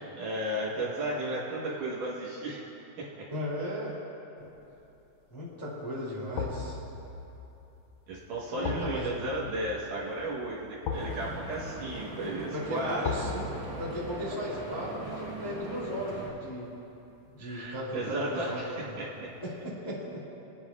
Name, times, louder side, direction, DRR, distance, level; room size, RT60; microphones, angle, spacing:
voice 1, 0.2-2.7 3.0-3.3 8.1-13.1 17.4-19.3, right 1 dB, 65° right, -5 dB, 2.6 m, -34 dB
voice 2, 3.3-3.9 4.4-4.5 5.3-6.8 8.5-9.2 12.5-13.5 13.8-16.7 17.3-19.0 19.4-20.2, equal, 10° left, -8 dB, 1.6 m, -36 dB
sound 1, 4.6-5.0 6.4-17.4 17.7-17.8, left 5 dB, 75° left, 1.9 m, -40 dB
Stream / Boat Water vehicle, 10.9-16.3, right 2 dB, 45° right, 2.8 m, -40 dB
22.5 x 9.5 x 2.4 m, 2.9 s
omnidirectional pair, 4.5 m